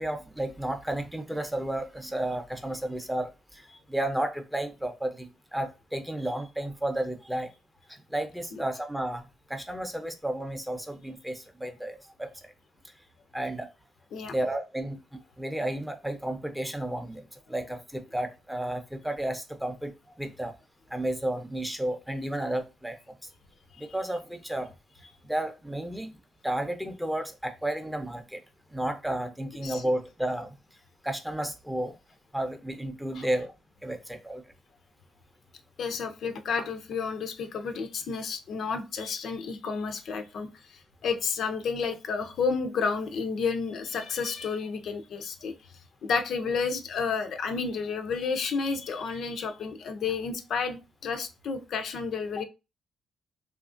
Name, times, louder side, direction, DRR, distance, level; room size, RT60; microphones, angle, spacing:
voice 1, 0.0-7.5 7.9-12.5 13.3-13.7 14.3-20.5 20.9-23.1 23.8-24.7 25.2-26.1 26.4-28.4 28.7-30.6 31.0-31.9 32.3-33.5 33.8-34.4, right 1 dB, 5° right, 6 dB, 0.5 m, -32 dB
voice 2, 35.8-45.5 46.0-52.4, left 5 dB, 65° left, 7 dB, 0.4 m, -31 dB
2.8 x 2.4 x 2.4 m, 0.27 s
cardioid pair, 90°, 0 cm